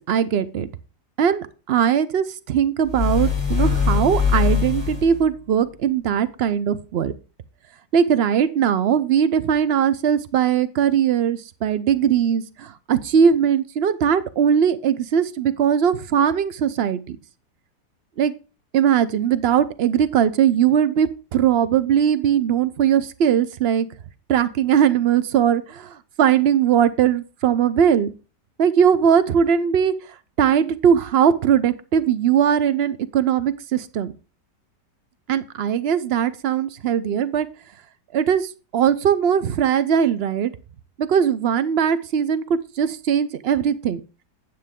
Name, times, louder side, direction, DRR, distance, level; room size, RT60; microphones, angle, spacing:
voice 1, 0.1-0.7 1.2-7.1 7.9-17.2 18.2-18.3 18.7-23.9 24.3-28.1 28.6-30.0 30.4-34.1 35.3-37.5 38.1-40.5 41.0-44.0, right 8 dB, 65° right, 14 dB, 0.6 m, -20 dB
sound 1, 2.9-5.3, left 6 dB, 20° left, 2.4 m, -22 dB
9.6 x 7.6 x 3.6 m, 0.33 s
omnidirectional pair, 1.9 m